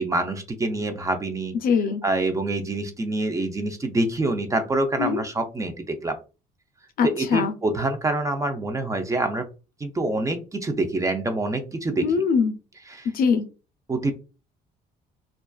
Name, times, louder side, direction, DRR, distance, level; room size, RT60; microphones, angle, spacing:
voice 1, 0.0-1.5 2.0-6.2 7.0-9.5 9.8-12.0 12.9-13.1 13.9-14.1, right 2 dB, 20° right, 7 dB, 0.4 m, -26 dB
voice 2, 1.6-2.0 5.0-5.2 7.0-7.5 12.0-12.6 13.1-13.5, left 6 dB, 60° left, 9 dB, 0.5 m, -22 dB
2.4 x 2.3 x 2.2 m, 0.31 s
cardioid pair, 110°, 17 cm